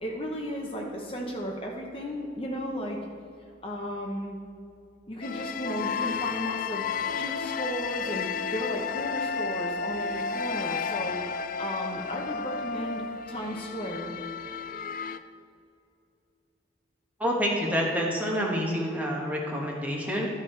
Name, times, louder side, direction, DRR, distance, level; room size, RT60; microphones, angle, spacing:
voice 1, 0.0-3.0 3.6-4.4 5.1-6.8 7.1-11.2 11.6-14.1, equal, 30° left, 0 dB, 0.9 m, -34 dB
sound 1, 5.2-15.2, left 5 dB, 45° left, 0.3 m, -32 dB
voice 2, 17.2-20.3, equal, 10° right, -2 dB, 1.1 m, -28 dB
12.0 x 4.9 x 4.4 m, 2.4 s
head